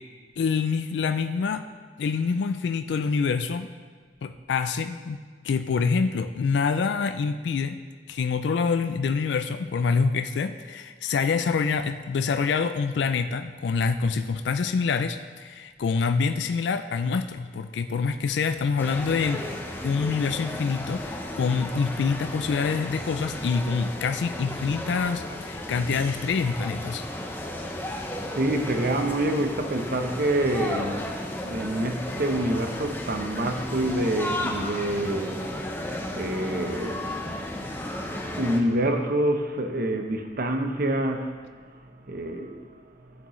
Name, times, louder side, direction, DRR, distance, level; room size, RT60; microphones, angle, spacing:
voice 1, 0.4-1.6 2.0-3.7 4.2-7.8 8.1-19.4 19.8-27.0, left 5 dB, 70° left, 9 dB, 0.4 m, -26 dB
sound 1, 18.8-38.6, left 1 dB, 10° left, 0.7 m, -34 dB
voice 2, 28.2-31.1 31.4-37.5 38.4-41.3 42.1-42.6, right 1 dB, 55° right, 5 dB, 0.8 m, -27 dB
12.5 x 8.4 x 3.1 m, 1.5 s
head